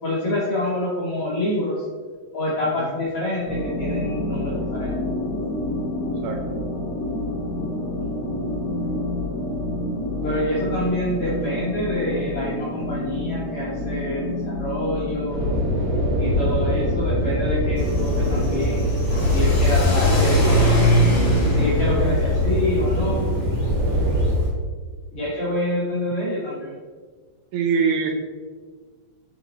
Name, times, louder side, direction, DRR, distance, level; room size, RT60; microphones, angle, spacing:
voice 1, 0.0-1.9 2.3-5.0 10.2-15.5 16.2-21.0 21.5-23.3 25.1-26.8, left 1 dB, 70° left, -8 dB, 1.3 m, -27 dB
sound 1, 3.5-18.9, left 1 dB, 85° left, 3.5 m, -28 dB
voice 2, 6.2-6.5 27.5-28.1, right 6 dB, 85° right, 2 dB, 2.2 m, -23 dB
sound 2, 15.3-24.3, left 1 dB, 50° right, 2.1 m, -22 dB
Car / Accelerating revving vroom, 17.8-24.5, right 1 dB, 30° left, 2.2 m, -23 dB
10.0 x 4.1 x 4.2 m, 1.5 s
omnidirectional pair, 5.0 m